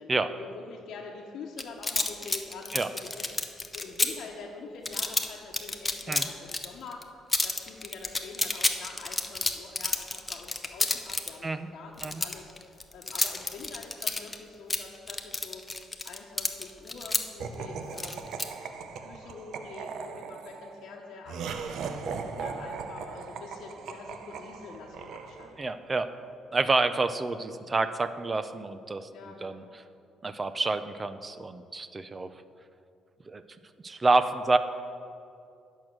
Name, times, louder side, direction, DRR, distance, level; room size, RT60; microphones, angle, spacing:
voice 1, 0.0-15.6 16.0-18.2 18.5-21.7 22.2-25.6 29.1-29.7, left 4 dB, 70° left, -3 dB, 1.0 m, -45 dB
sound 1, 1.6-4.1 4.9-5.3 5.5-6.7 6.9-7.0 7.3-11.3 12.0-14.4 14.7-17.2 18.0-18.4, left 2 dB, 15° left, 0.7 m, -29 dB
Laughter, 17.4-25.8, right 5 dB, 70° right, 0.7 m, -39 dB
voice 2, 25.6-26.1 26.5-29.1 29.4-29.6 30.2-32.3 33.3-33.4 33.8-34.6, right 3 dB, 25° right, 12 dB, 0.5 m, -28 dB
10.5 x 6.4 x 6.1 m, 2.5 s
cardioid pair, 100°, 0 cm